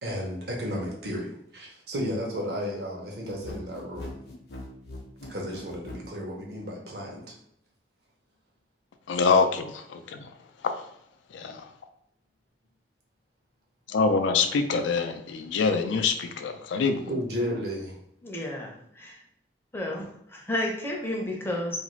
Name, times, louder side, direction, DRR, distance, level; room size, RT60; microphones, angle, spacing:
voice 1, 0.0-4.2 5.3-7.3 17.1-18.0, equal, 60° right, -1 dB, 0.8 m, -33 dB
sound 1, 3.3-6.1, left 1 dB, 60° left, 0.7 m, -40 dB
voice 2, 9.1-10.3 11.3-11.7 13.9-17.1, left 4 dB, 90° left, 7 dB, 0.3 m, -25 dB
voice 3, 18.2-19.2 19.7-21.8, left 1 dB, 15° left, -1 dB, 0.5 m, -32 dB
2.5 x 2.4 x 3.0 m, 0.73 s
head